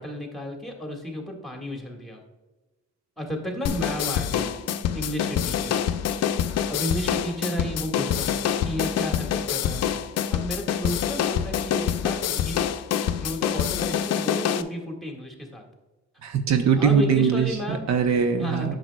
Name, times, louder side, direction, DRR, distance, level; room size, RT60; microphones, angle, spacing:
voice 1, 0.0-2.2 3.2-4.5 4.9-5.7 6.4-8.3 8.6-9.8 10.3-12.6 13.2-15.6 16.8-17.9 18.4-18.7, equal, ahead, 2 dB, 1.6 m, -32 dB
sound 1, 3.6-14.6, left 9 dB, 55° left, 0.5 m, -26 dB
voice 2, 16.2-18.7, right 6 dB, 65° right, 6 dB, 0.7 m, -22 dB
8.7 x 6.3 x 2.2 m, 1.2 s
cardioid pair, 90°, 30 cm